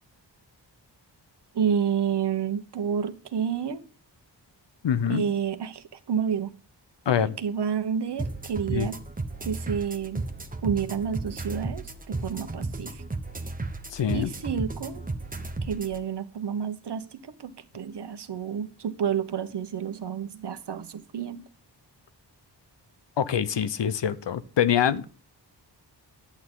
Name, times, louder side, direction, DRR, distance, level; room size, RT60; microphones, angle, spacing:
voice 1, 1.5-3.8 5.1-6.5 7.2-9.0 9.4-10.2 10.6-13.0 14.1-15.0 15.6-21.4, right 7 dB, 65° right, 1.0 m, -30 dB
voice 2, 4.8-5.2 7.1-7.4 8.7-8.9 13.9-14.3 23.2-25.1, left 8 dB, 75° left, 0.8 m, -25 dB
sound 1, 8.2-16.0, right 2 dB, 20° right, 0.9 m, -34 dB
11.0 x 8.6 x 3.7 m
wide cardioid pair, 150°, 43 cm